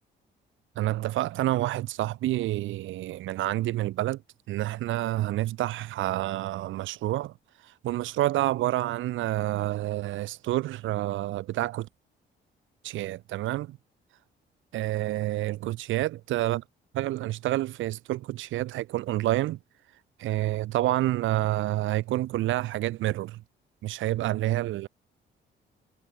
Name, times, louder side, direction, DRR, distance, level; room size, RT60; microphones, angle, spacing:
voice 1, 0.8-4.2 4.5-7.3 7.6-11.9 12.8-13.8 14.7-16.6 16.9-19.6 20.2-23.4 23.8-24.9, right 15 dB, 75° right, 0.6 m, -28 dB
cardioid pair, 90°, 20 cm